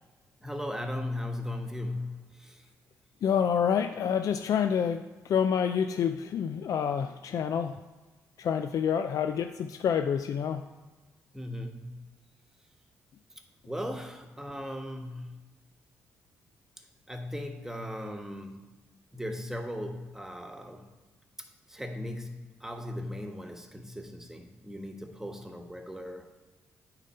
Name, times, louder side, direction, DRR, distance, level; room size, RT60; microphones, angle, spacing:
voice 1, 0.4-2.6 11.3-12.0 13.6-15.3 17.1-18.7 19.1-20.9 21.4-26.3, left 1 dB, 5° right, 4 dB, 1.2 m, -38 dB
voice 2, 3.2-7.8 8.4-10.6, left 7 dB, 65° left, 8 dB, 0.4 m, -28 dB
8.7 x 3.9 x 5.5 m, 1.2 s
supercardioid pair, 65°, 6 cm